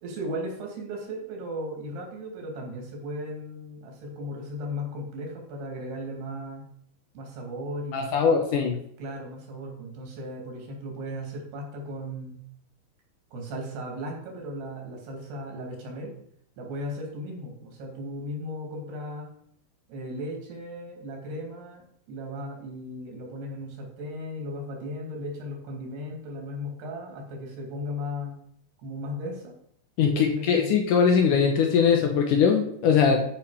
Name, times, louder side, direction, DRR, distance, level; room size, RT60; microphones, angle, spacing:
voice 1, 0.0-6.7 7.1-8.3 9.0-12.3 13.3-16.1 16.6-19.3 19.9-21.8 22.1-28.4 28.8-29.5 30.0-30.7, equal, 90° right, 0 dB, 4.7 m, -36 dB
voice 2, 7.9-8.8 30.0-33.2, left 6 dB, 70° left, 2 dB, 2.2 m, -21 dB
13.0 x 5.7 x 5.0 m, 0.70 s
omnidirectional pair, 4.5 m